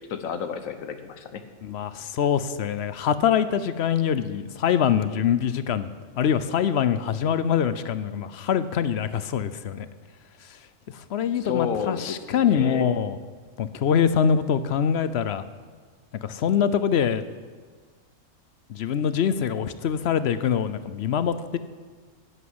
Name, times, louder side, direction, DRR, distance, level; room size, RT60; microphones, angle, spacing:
voice 1, 0.0-1.4 11.4-12.9, left 7 dB, 85° left, 9 dB, 1.2 m, -31 dB
voice 2, 1.6-5.9 6.2-9.9 10.9-13.2 13.6-15.4 16.2-17.2 18.7-21.6, left 8 dB, 60° left, 13 dB, 0.8 m, -24 dB
11.0 x 9.4 x 7.9 m, 1.5 s
omnidirectional pair, 1.4 m